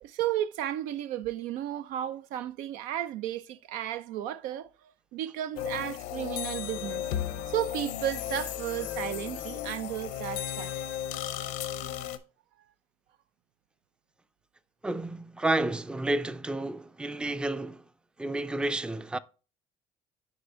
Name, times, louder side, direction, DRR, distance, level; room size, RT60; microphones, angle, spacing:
voice 1, 0.0-4.7 5.1-7.1 7.5-10.8, right 12 dB, 80° right, 0.4 m, -33 dB
sound 1, 5.6-12.2, left 10 dB, 85° left, 0.7 m, -35 dB
voice 2, 14.8-17.8 18.2-19.2, right 2 dB, 5° right, 0.4 m, -30 dB
8.0 x 5.2 x 2.6 m
supercardioid pair, 80°, 13 cm